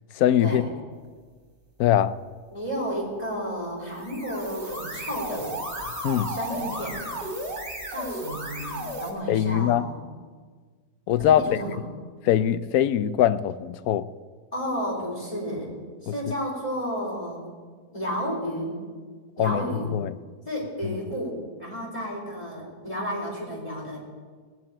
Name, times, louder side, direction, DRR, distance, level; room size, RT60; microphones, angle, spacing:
voice 1, 0.2-0.6 1.8-2.1 6.0-6.3 9.3-9.8 11.1-11.4 12.2-14.1 19.4-19.6 19.9-20.1 20.8-21.0, left 11 dB, 75° left, 1.0 m, -22 dB
voice 2, 2.5-5.5 6.3-7.0 7.9-10.0 11.2-11.8 14.5-15.7 16.0-17.4 17.9-18.8 19.4-19.9 20.5-24.0, equal, 20° left, 4.3 m, -32 dB
sound 1, 3.9-9.1, right 1 dB, 45° right, 3.1 m, -34 dB
19.0 x 7.4 x 8.9 m
omnidirectional pair, 1.6 m